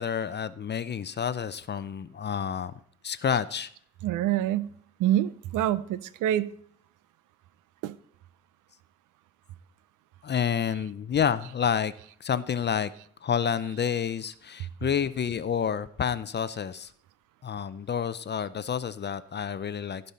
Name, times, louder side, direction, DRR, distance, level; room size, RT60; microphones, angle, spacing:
voice 1, 0.0-2.7 3.0-3.7 10.2-11.9 12.2-12.9 13.2-16.9 17.4-20.1, left 7 dB, 35° left, 0.6 m, -29 dB
voice 2, 4.0-4.7 5.0-6.5 7.8-7.9, right 12 dB, 85° right, 0.6 m, -26 dB
15.5 x 5.5 x 4.2 m
cardioid pair, 90°, 30 cm